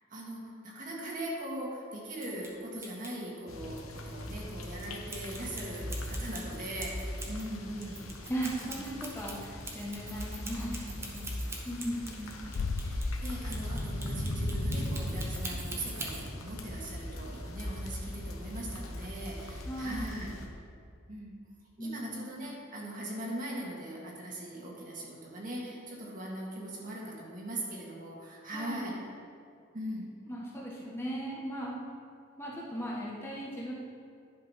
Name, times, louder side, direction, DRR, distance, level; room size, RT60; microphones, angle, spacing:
voice 1, 0.1-8.3 8.6-8.8 12.1-20.3 21.1-21.3 21.8-29.0 29.7-30.1, right 1 dB, 40° right, -3 dB, 1.9 m, -40 dB
sound 1, 2.1-2.5 2.8-3.1 5.1-7.4 7.8-16.2, right 2 dB, 10° right, 1.0 m, -43 dB
sound 2, 3.5-20.5, left 1 dB, 80° left, 1.1 m, -39 dB
voice 2, 8.3-11.2 11.6-12.1 19.7-20.1 21.8-22.2 28.5-28.9 30.3-31.8 32.4-33.7, right 1 dB, 10° left, -5 dB, 1.3 m, -37 dB
sound 3, 12.5-18.3 18.5-18.6, left 4 dB, 50° left, 0.3 m, -41 dB
11.0 x 5.5 x 5.7 m, 2.4 s
head